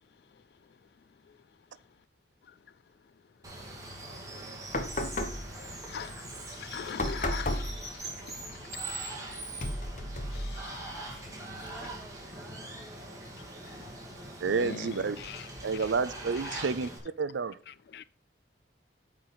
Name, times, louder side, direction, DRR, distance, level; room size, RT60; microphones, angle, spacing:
Water, 3.4-17.0, right 2 dB, 20° right, 2.2 m, -42 dB
sound 1, 4.7-12.2, left 1 dB, 45° left, 1.0 m, -37 dB
voice 1, 5.5-6.1 6.5-9.1 10.3-11.3 14.5-15.5 15.8-15.9 16.5-16.6 17.7-18.0, left 7 dB, 60° left, 0.3 m, -43 dB
voice 2, 11.6-13.3, right 1 dB, ahead, 2.4 m, -52 dB
voice 3, 14.4-15.2 15.6-16.9 17.2-17.6, right 5 dB, 90° right, 0.5 m, -29 dB
8.9 x 4.6 x 5.6 m
head